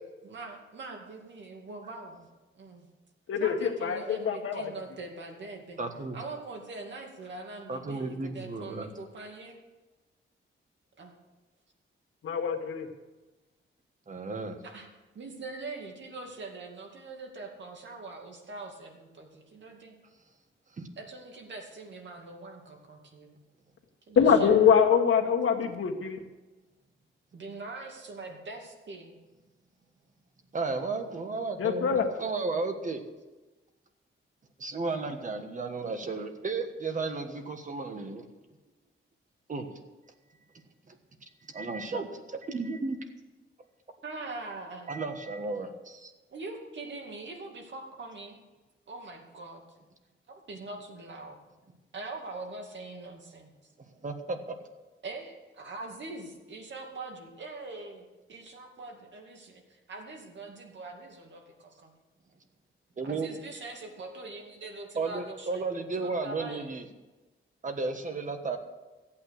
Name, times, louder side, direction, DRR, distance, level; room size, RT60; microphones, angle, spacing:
voice 1, 0.2-2.3 2.5-2.9 3.4-5.8 6.1-9.6 11.0-11.1 14.6-14.9 15.1-20.0 21.0-23.4 24.1-24.5 27.3-29.2 44.0-45.0 46.3-48.4 48.9-49.6 50.3-51.4 51.9-53.5 55.0-61.9 63.0-65.7 66.0-66.7, right 3 dB, 60° right, 2 dB, 2.4 m, -43 dB
voice 2, 3.3-4.7 12.2-12.9 24.1-26.2 31.6-32.0, left 7 dB, 85° left, 3 dB, 1.7 m, -24 dB
voice 3, 5.8-6.2 7.7-8.9 14.1-14.6 20.8-20.9 30.5-33.0 34.6-38.3 39.5-39.7 40.9-41.0 41.5-43.0 44.9-46.1 53.8-54.5 63.0-63.3 64.9-66.9 67.6-68.6, right 3 dB, 40° right, 6 dB, 1.4 m, -34 dB
14.5 x 8.8 x 6.6 m, 1.2 s
wide cardioid pair, 165°, 21 cm